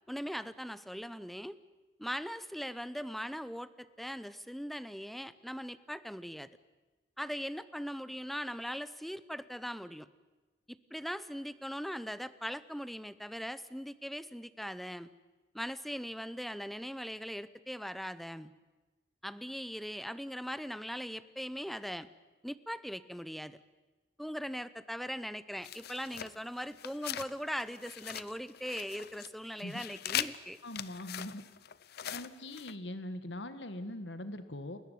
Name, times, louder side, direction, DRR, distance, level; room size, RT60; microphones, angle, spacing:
voice 1, 0.1-1.6 2.0-6.5 7.2-10.1 10.7-15.1 15.5-18.5 19.2-22.1 22.4-23.6 24.2-30.6, equal, ahead, 15 dB, 0.7 m, -40 dB
sound 1, 25.6-27.3 27.6-29.3 29.5-32.7, left 11 dB, 60° left, 0.7 m, -41 dB
voice 2, 30.6-31.4 32.1-34.8, left 1 dB, 75° left, 10 dB, 1.7 m, -41 dB
29.5 x 14.0 x 9.4 m, 1.2 s
head